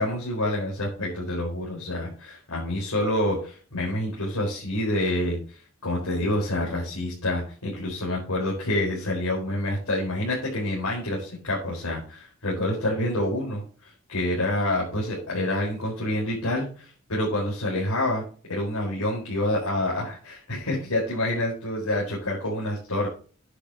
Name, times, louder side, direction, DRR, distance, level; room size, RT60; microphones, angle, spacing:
voice 1, 0.0-5.4 5.8-23.1, left 1 dB, 90° left, -4 dB, 4.6 m, -27 dB
11.0 x 9.9 x 2.9 m, 0.38 s
head